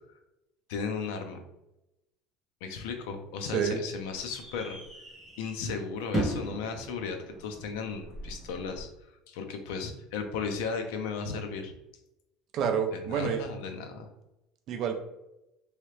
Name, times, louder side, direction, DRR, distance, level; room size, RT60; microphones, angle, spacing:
voice 1, 0.7-1.4 2.6-4.8 5.4-8.9 9.3-11.7 12.9-14.1, left 5 dB, 80° left, 5 dB, 0.5 m, -35 dB
sound 1, 2.8-8.8, right 1 dB, ahead, 1.0 m, -38 dB
voice 2, 12.5-13.4 14.7-15.0, right 7 dB, 35° right, 6 dB, 0.5 m, -28 dB
3.2 x 2.8 x 3.1 m, 0.90 s
cardioid pair, 175°, 0 cm